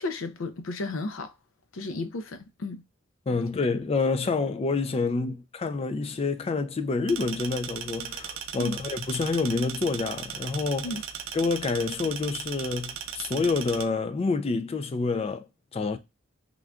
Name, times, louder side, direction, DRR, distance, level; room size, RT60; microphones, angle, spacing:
voice 1, 0.0-1.3 1.7-2.8 3.3-3.6 5.2-5.3 8.6-8.8 10.8-11.0, left 2 dB, 80° left, 0.5 m, -34 dB
voice 2, 3.3-11.0 11.3-16.0, left 4 dB, 30° left, 0.3 m, -28 dB
sound 1, 7.1-13.8, right 8 dB, 85° right, 0.5 m, -37 dB
3.7 x 2.2 x 3.5 m
head